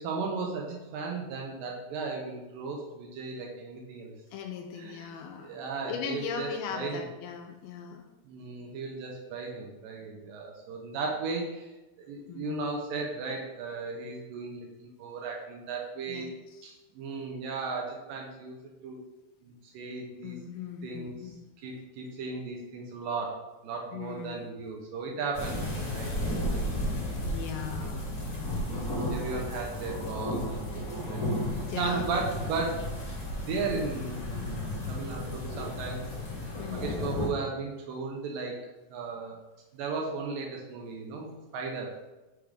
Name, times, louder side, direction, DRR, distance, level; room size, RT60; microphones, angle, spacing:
voice 1, 0.0-4.2 4.8-7.0 8.3-11.7 12.0-16.3 16.6-18.6 18.8-19.0 19.4-20.4 20.8-21.3 21.6-26.1 28.5-31.2 31.8-32.9 33.2-36.0 36.4-38.6 38.9-39.4 39.7-41.9, right 4 dB, 75° right, 0 dB, 2.3 m, -36 dB
voice 2, 4.3-8.1 12.3-12.6 16.1-16.2 20.2-21.4 21.7-21.8 23.9-24.5 27.2-28.1 28.6-28.7 31.5-32.0 33.7-33.8 36.6-37.0, left 7 dB, 80° left, 4 dB, 2.2 m, -39 dB
sound 1, 25.3-37.3, left 1 dB, 60° left, 1.0 m, -33 dB
6.1 x 3.4 x 5.0 m, 1.1 s
omnidirectional pair, 4.4 m